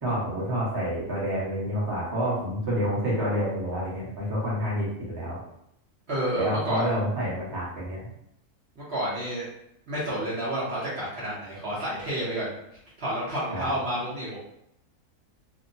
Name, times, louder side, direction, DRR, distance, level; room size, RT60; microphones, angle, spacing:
voice 1, 0.0-5.4 6.3-8.1 13.5-13.7, equal, 20° right, -7 dB, 0.7 m, -28 dB
voice 2, 6.1-6.8 8.8-9.5 9.9-12.5 13.0-14.4, right 1 dB, 50° right, -9 dB, 0.9 m, -30 dB
2.8 x 2.1 x 2.6 m, 0.77 s
omnidirectional pair, 1.7 m